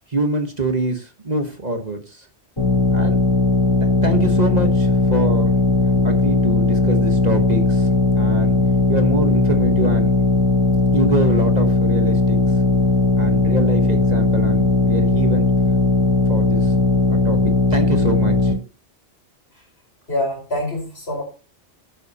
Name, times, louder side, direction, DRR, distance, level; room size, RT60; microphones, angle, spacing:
voice 1, 0.1-2.3 2.9-3.2 3.8-5.5 6.0-7.9 8.2-8.5 8.9-10.1 10.9-12.4 13.2-15.5 16.3-16.7 17.1-18.5, right 2 dB, 40° right, 5 dB, 1.4 m, -24 dB
sound 1, 2.6-18.5, left 3 dB, 25° left, 4.2 m, -17 dB
voice 2, 20.1-21.2, left 1 dB, 60° left, 1 dB, 5.1 m, -25 dB
12.0 x 9.2 x 2.9 m, 0.35 s
omnidirectional pair, 1.2 m